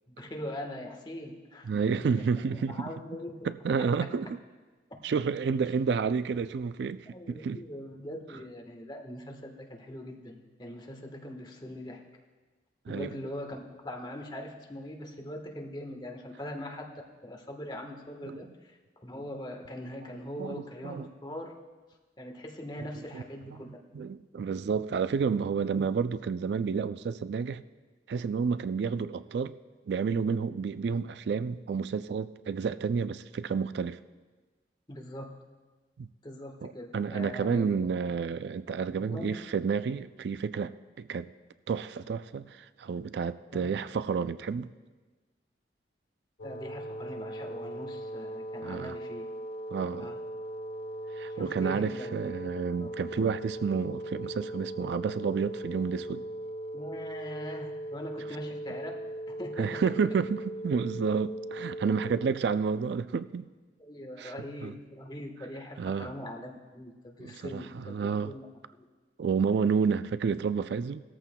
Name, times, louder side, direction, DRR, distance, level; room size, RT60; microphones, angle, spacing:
voice 1, 0.1-3.3 4.0-4.1 7.1-12.0 12.9-16.9 17.2-21.5 22.2-23.8 34.9-35.3 36.2-38.2 39.0-39.4 43.5-43.7 46.4-49.3 50.0-50.2 51.3-52.2 52.8-52.9 56.7-58.9 59.3-59.8 63.8-68.5 68.7-68.9, left 1 dB, 25° left, 1.3 m, -41 dB
voice 2, 1.7-2.9 3.4-4.4 5.0-7.6 12.9-13.1 18.2-18.4 20.4-21.1 23.1-23.2 23.9-27.6 28.1-29.5 29.9-34.0 36.0-36.1 36.6-41.3 41.7-44.7 48.6-49.0 49.7-50.1 51.2-56.2 59.6-63.4 64.2-64.3 64.6-64.7 65.8-66.1 67.2-68.3 69.2-71.0, right 5 dB, 70° right, 0.3 m, -30 dB
sound 1, 46.4-62.2, right 1 dB, 65° left, 1.1 m, -39 dB
18.0 x 14.0 x 2.3 m
head